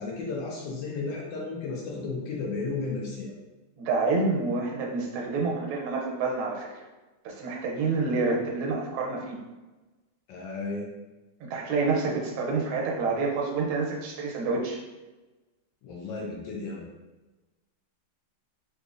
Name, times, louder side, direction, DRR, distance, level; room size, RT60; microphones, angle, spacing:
voice 1, 0.0-3.3 10.3-10.9 15.8-16.9, left 3 dB, 70° left, -2 dB, 1.2 m, -33 dB
voice 2, 3.8-6.7 7.2-9.4 11.4-14.8, right 3 dB, 85° right, -1 dB, 1.6 m, -28 dB
3.8 x 2.8 x 2.4 m, 1.1 s
omnidirectional pair, 2.3 m